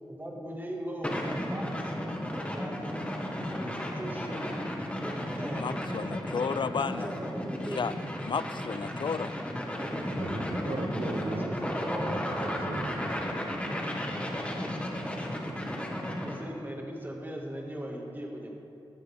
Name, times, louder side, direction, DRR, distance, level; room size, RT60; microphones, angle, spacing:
voice 1, 0.1-1.9 2.5-3.0 3.5-4.6 5.0-6.0 6.7-7.9 9.4-10.1 11.4-12.1 16.2-18.5, equal, 20° right, 0 dB, 1.8 m, -39 dB
sound 1, 1.0-16.4, equal, 15° left, 1.5 m, -34 dB
voice 2, 5.5-7.1 7.8-7.9 8.2-9.3, left 5 dB, 60° left, 14 dB, 0.4 m, -32 dB
voice 3, 10.1-11.7 12.0-13.3, right 3 dB, 85° right, 8 dB, 0.7 m, -38 dB
14.0 x 11.5 x 3.5 m, 2.8 s
wide cardioid pair, 60°, 9 cm